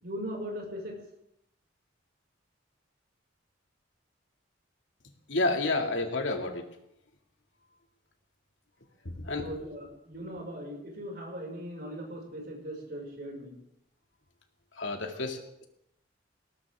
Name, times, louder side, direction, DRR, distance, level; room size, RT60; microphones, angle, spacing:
voice 1, 0.0-1.0 9.4-13.5, equal, 55° right, -1 dB, 6.1 m, -39 dB
voice 2, 5.3-6.7 9.0-9.5 14.8-15.6, left 2 dB, 75° left, 3 dB, 2.4 m, -30 dB
20.5 x 18.0 x 3.7 m, 0.77 s
head